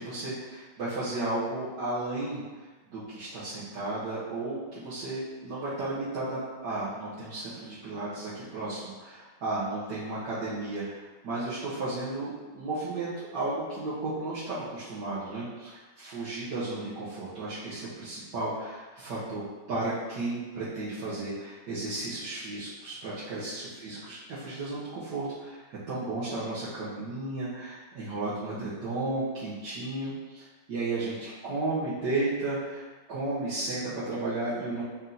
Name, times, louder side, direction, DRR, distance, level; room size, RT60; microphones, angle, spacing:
voice 1, 0.0-2.4 2.9-19.4 19.7-34.8, right 2 dB, 65° right, -12 dB, 1.6 m, -34 dB
4.3 x 2.7 x 3.8 m, 1.3 s
omnidirectional pair, 2.1 m